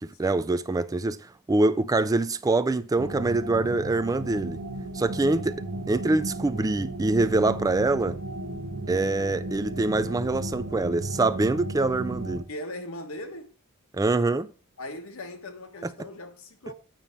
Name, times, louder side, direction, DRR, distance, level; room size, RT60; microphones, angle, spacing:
voice 1, 0.0-4.6 4.9-5.5 5.9-8.2 8.9-12.4 13.9-14.5 15.8-15.9, right 2 dB, 15° right, 0.3 m, -25 dB
sound 1, 3.0-12.4, right 2 dB, 85° right, 0.8 m, -34 dB
voice 2, 12.5-13.5 14.8-16.7, left 1 dB, 70° left, 1.4 m, -39 dB
9.0 x 5.6 x 5.1 m
head